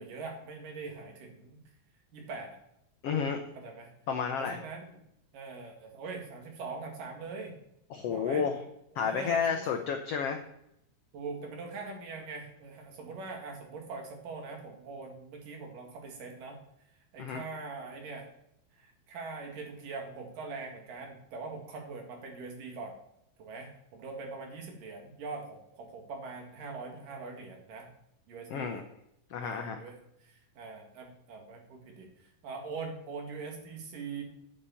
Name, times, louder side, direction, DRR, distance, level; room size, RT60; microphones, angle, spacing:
voice 1, 0.0-1.6 2.1-2.6 3.6-3.9 4.4-5.0 5.3-7.5 8.0-8.4 8.9-9.6 11.1-16.6 17.1-18.3 18.7-22.9 23.4-27.9 28.3-28.9 29.4-32.1 32.4-34.2, right 4 dB, 75° right, 1 dB, 3.7 m, -42 dB
voice 2, 3.0-3.4 4.1-4.6 7.9-8.6 8.9-10.4 17.2-17.4 28.5-28.8 29.3-29.8, left 6 dB, 85° left, 6 dB, 1.3 m, -31 dB
8.5 x 8.5 x 7.0 m, 0.80 s
omnidirectional pair, 3.9 m